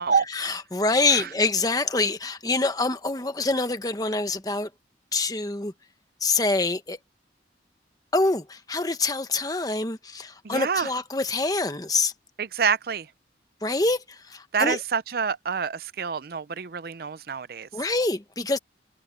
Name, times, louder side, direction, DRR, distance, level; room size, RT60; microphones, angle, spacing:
voice 1, 0.3-4.7 5.1-5.7 6.2-7.0 8.1-12.1 13.6-14.8 17.7-18.6, left 3 dB, 20° left, 1.2 m, -25 dB
voice 2, 10.4-10.9 12.4-13.1 14.5-17.7, right 6 dB, 55° right, 0.5 m, -27 dB
head